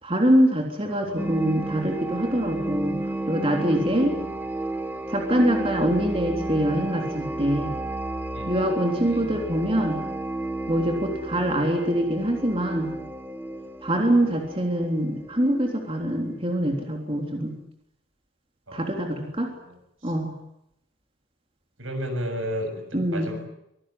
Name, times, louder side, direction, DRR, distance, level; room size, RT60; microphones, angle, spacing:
voice 1, 0.0-3.0 3.3-4.1 5.1-7.7 8.5-10.0 10.7-12.9 13.8-17.5 18.7-19.5 20.0-20.3 22.9-23.4, equal, 30° right, 2 dB, 3.6 m, -24 dB
voice 2, 0.9-1.3 3.6-4.3 8.3-8.7 9.1-9.4 11.4-11.5 14.1-14.2 18.7-19.0 21.8-22.8 23.1-23.5, equal, 80° right, 6 dB, 7.1 m, -34 dB
sound 1, 1.2-16.6, right 2 dB, 10° right, 1.5 m, -32 dB
24.5 x 18.0 x 9.9 m, 0.81 s
head